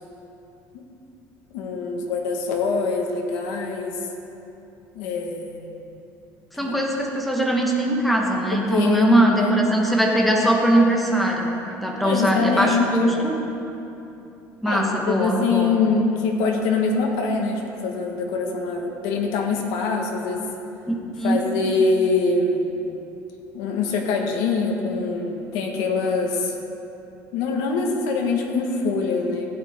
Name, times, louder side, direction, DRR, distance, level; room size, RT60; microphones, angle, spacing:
voice 1, 1.5-4.0 4.9-5.7 6.6-6.8 8.5-9.5 12.0-13.2 14.6-20.5 21.2-22.8 23.5-26.5 27.3-29.5, left 4 dB, 80° left, 1 dB, 1.5 m, -24 dB
voice 2, 6.6-13.4 14.6-15.7 20.9-21.4, right 1 dB, ahead, -1 dB, 1.2 m, -21 dB
16.0 x 9.0 x 3.7 m, 2.8 s
cardioid pair, 160°, 7 cm